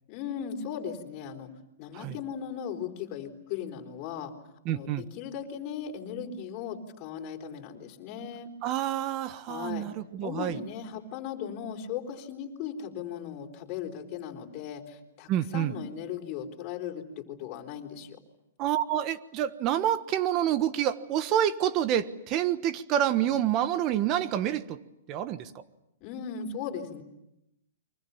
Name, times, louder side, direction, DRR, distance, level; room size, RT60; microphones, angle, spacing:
voice 1, 0.1-1.5 1.8-4.3 4.7-8.5 9.5-9.9 10.2-18.2 26.0-27.0, left 8 dB, 35° left, 3 dB, 4.2 m, -37 dB
voice 2, 4.6-5.0 8.6-10.6 15.3-15.7 18.6-24.8 25.1-25.5, right 11 dB, 30° right, 13 dB, 1.3 m, -28 dB
29.5 x 24.0 x 7.2 m, 0.87 s
hypercardioid pair, 145°, 0 cm